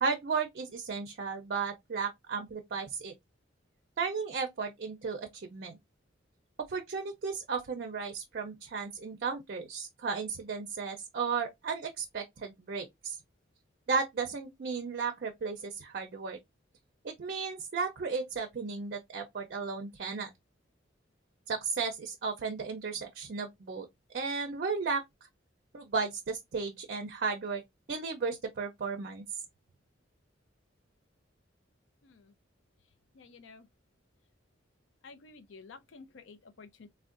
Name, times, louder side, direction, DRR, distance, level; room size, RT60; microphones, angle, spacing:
voice 1, 0.0-3.1 4.0-5.8 6.7-13.2 13.9-16.4 17.0-20.3 21.5-23.9 24.1-25.0 25.7-27.6 27.9-29.2, right 5 dB, 55° right, 0.5 m, -34 dB
voice 2, 33.2-33.6 35.0-36.9, left 4 dB, 75° left, 0.5 m, -51 dB
3.5 x 2.1 x 2.4 m
head